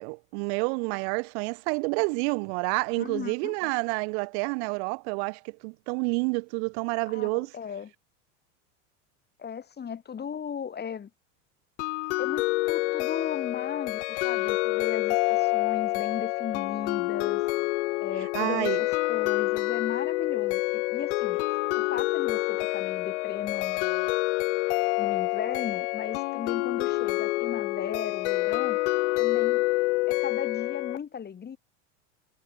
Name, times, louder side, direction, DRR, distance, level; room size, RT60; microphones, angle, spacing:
voice 1, 0.0-7.5 18.3-18.8, right 35 dB, 65° right, 1.8 m, -29 dB
voice 2, 3.0-3.7 7.1-7.9 9.4-11.1 12.2-17.4 18.0-21.4 21.7-24.2 25.0-28.8 29.2-29.6 30.1-31.6, left 7 dB, 25° left, 6.4 m, -36 dB
sound 1, 11.8-31.0, left 22 dB, 70° left, 0.8 m, -27 dB
hypercardioid pair, 105°, 36 cm